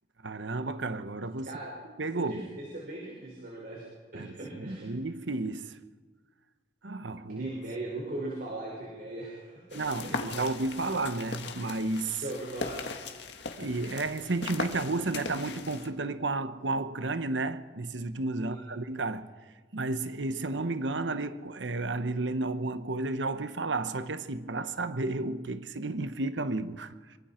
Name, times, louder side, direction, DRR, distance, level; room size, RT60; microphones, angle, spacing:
voice 1, 0.2-1.6 2.0-2.5 4.1-4.3 4.6-5.8 6.8-7.5 9.7-12.2 13.6-19.3 19.7-27.2, right 2 dB, 80° right, 1.0 m, -32 dB
voice 2, 1.4-1.7 2.1-3.8 4.1-4.9 7.3-9.8 10.4-10.5 12.2-12.8 18.4-18.6, right 2 dB, 50° right, 5.5 m, -39 dB
sound 1, 9.7-15.9, left 4 dB, 65° left, 1.8 m, -39 dB
25.5 x 24.5 x 4.4 m
head